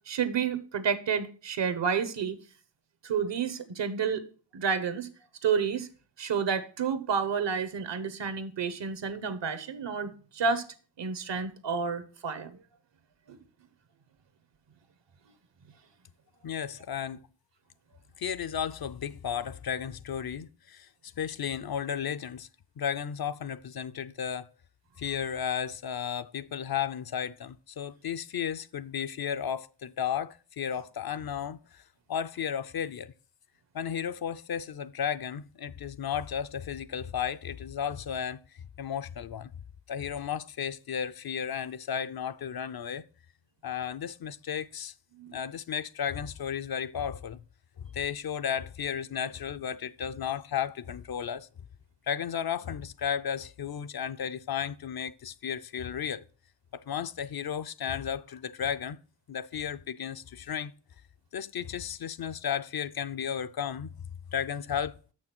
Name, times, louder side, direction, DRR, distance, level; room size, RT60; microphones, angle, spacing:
voice 1, 0.1-2.4 3.0-4.2 4.5-5.1 5.4-5.9 6.2-10.7 11.0-12.6 13.3-13.4 45.2-45.4, right 6 dB, 75° right, 1.1 m, -30 dB
voice 2, 16.4-17.2 18.2-22.5 22.8-24.5 25.0-31.8 32.1-33.1 33.7-38.4 38.8-39.5 39.9-43.0 43.6-44.9 45.3-47.4 47.8-51.5 52.1-56.2 56.7-59.0 59.3-60.7 61.3-63.9 64.3-65.0, left 8 dB, 55° left, 0.6 m, -34 dB
6.8 x 6.3 x 5.9 m
cardioid pair, 60°, 43 cm